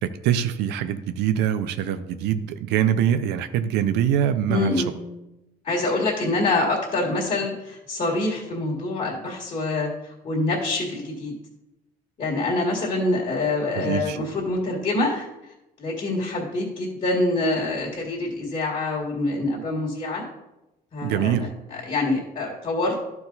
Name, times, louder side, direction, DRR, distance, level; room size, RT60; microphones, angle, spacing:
voice 1, 0.0-4.8 13.7-14.2 21.0-21.5, right 10 dB, 85° right, 11 dB, 0.6 m, -24 dB
voice 2, 4.5-5.0 5.6-11.3 12.2-15.3 15.8-20.2 20.9-23.0, left 2 dB, 40° left, -4 dB, 1.9 m, -25 dB
12.0 x 4.6 x 4.0 m, 0.94 s
cardioid pair, 110°, 17 cm